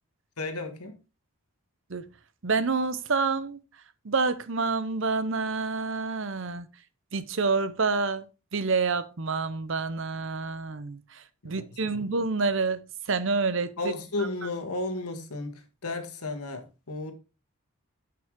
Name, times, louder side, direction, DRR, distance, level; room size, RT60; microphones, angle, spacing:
voice 1, 0.4-1.0 11.4-12.0 13.8-17.1, left 2 dB, 90° left, 1.7 m, -34 dB
voice 2, 2.4-3.6 4.0-6.7 7.1-8.3 8.5-11.0 11.4-13.9, right 4 dB, 55° right, 0.7 m, -28 dB
9.3 x 5.8 x 3.7 m
head